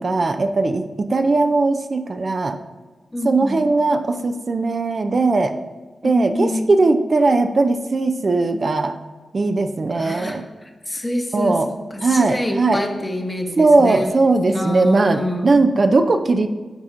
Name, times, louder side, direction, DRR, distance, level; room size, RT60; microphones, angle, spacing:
voice 1, 0.0-2.6 3.2-5.5 6.0-8.9 9.3-10.4 11.3-11.7 12.0-12.8 13.6-16.5, right 3 dB, 55° right, 8 dB, 0.4 m, -18 dB
voice 2, 3.1-3.6 6.0-6.7 10.0-10.4 10.9-14.1 14.5-15.5, left 1 dB, 25° left, 4 dB, 0.9 m, -26 dB
9.3 x 4.1 x 2.5 m, 1.3 s
cardioid pair, 45°, 0 cm